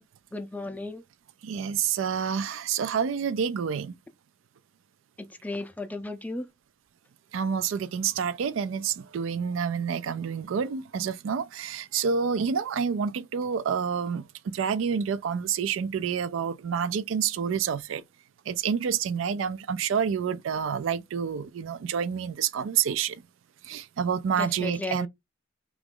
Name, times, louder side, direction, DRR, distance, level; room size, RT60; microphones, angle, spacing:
voice 1, 0.3-1.0 5.2-6.5 24.4-25.1, left 2 dB, 10° left, 0.4 m, -35 dB
voice 2, 1.4-4.0 7.3-14.3 14.5-18.0 18.5-23.2 23.6-25.1, right 7 dB, 85° right, 0.3 m, -28 dB
2.9 x 2.4 x 3.6 m
head